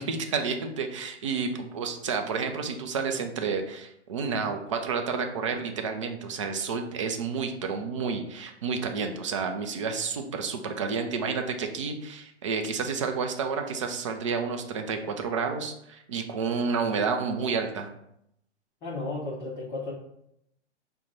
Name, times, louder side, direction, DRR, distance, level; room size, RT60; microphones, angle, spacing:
voice 1, 0.0-17.9, right 5 dB, 30° right, 5 dB, 0.4 m, -30 dB
voice 2, 18.8-19.9, left 2 dB, 20° left, -6 dB, 0.7 m, -33 dB
5.7 x 2.2 x 3.8 m, 0.78 s
figure-of-eight pair, 115°, 35 cm